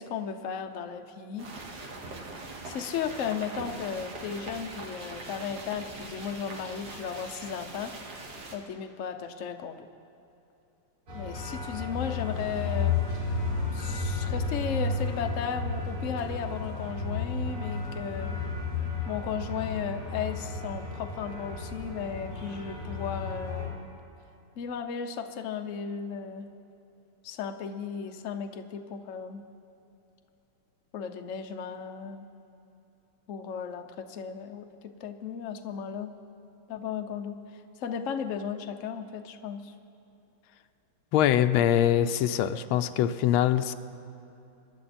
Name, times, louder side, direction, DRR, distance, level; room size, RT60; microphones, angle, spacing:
voice 1, 0.0-1.5 2.6-7.9 8.5-9.9 11.1-13.0 13.7-18.3 19.1-23.9 24.6-26.5 27.2-29.4 30.9-32.2 33.3-34.7 35.0-36.1 36.7-39.7, left 7 dB, 60° left, 6 dB, 0.8 m, -35 dB
sound 1, 1.4-8.6, right 2 dB, 50° right, 2.0 m, -42 dB
sound 2, 11.1-23.7, left 4 dB, 70° right, 4.0 m, -32 dB
voice 2, 41.1-43.7, left 10 dB, 80° left, 11 dB, 1.4 m, -23 dB
26.0 x 10.5 x 4.3 m, 2.8 s
omnidirectional pair, 2.3 m